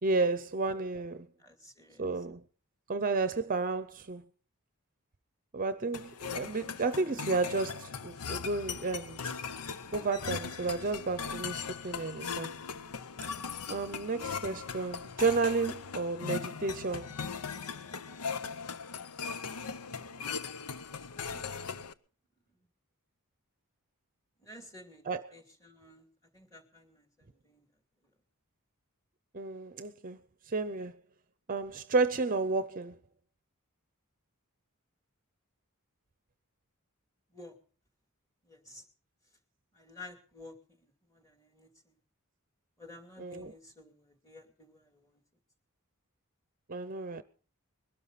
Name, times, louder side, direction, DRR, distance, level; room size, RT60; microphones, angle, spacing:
voice 1, 0.0-1.3 2.0-2.4 2.9-4.2 5.5-9.2 9.9-12.5 13.7-17.1 25.1-25.2 29.3-30.2 30.5-30.9 31.5-32.9 43.2-43.5 46.7-47.2, right 3 dB, 40° right, 0.7 m, -32 dB
voice 2, 1.4-2.2 24.4-26.1 26.3-27.7 37.3-37.5 38.4-38.8 39.7-41.9 42.8-45.2, left 2 dB, 15° left, 2.6 m, -53 dB
sound 1, 5.9-21.9, left 6 dB, 85° left, 0.7 m, -39 dB
21.5 x 12.5 x 4.1 m
head